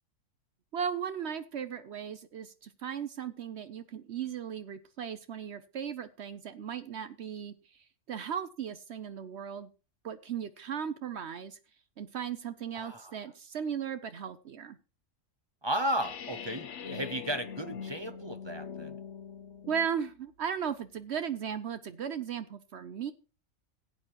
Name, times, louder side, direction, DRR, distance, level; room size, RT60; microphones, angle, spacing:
voice 1, 0.7-7.5 8.1-9.7 10.0-11.6 12.0-14.8 19.7-23.1, right 8 dB, 60° right, 0.9 m, -36 dB
voice 2, 12.7-13.2 15.6-18.9, right 1 dB, 30° right, 0.6 m, -34 dB
sound 1, 16.0-20.0, left 7 dB, 65° left, 1.2 m, -43 dB
16.5 x 8.6 x 2.9 m
omnidirectional pair, 1.4 m